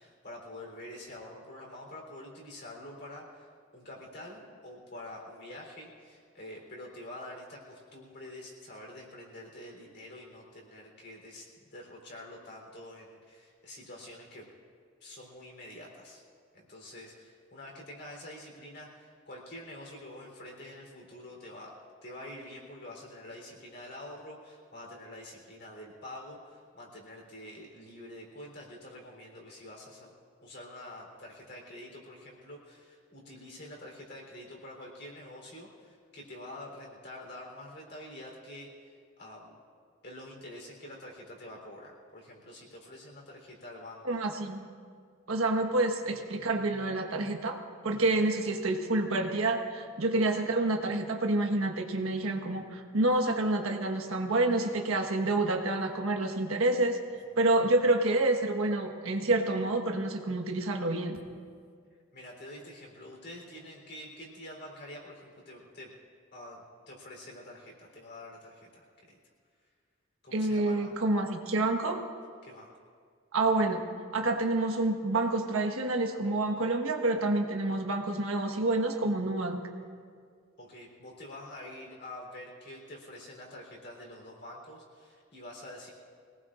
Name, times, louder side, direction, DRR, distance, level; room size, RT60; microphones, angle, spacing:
voice 1, 0.0-14.5 15.0-16.2 16.5-21.7 22.0-30.1 30.4-39.6 40.0-44.4 62.1-65.9 66.3-69.2 70.2-70.9 72.4-72.7 80.6-85.9, left 1 dB, 50° left, -2 dB, 3.6 m, -47 dB
voice 2, 44.0-44.6 45.3-47.6 47.8-57.0 57.4-61.2 70.3-72.0 73.3-73.8 74.1-79.6, right 2 dB, 85° right, 3 dB, 1.4 m, -28 dB
24.5 x 18.5 x 2.5 m, 2.1 s
head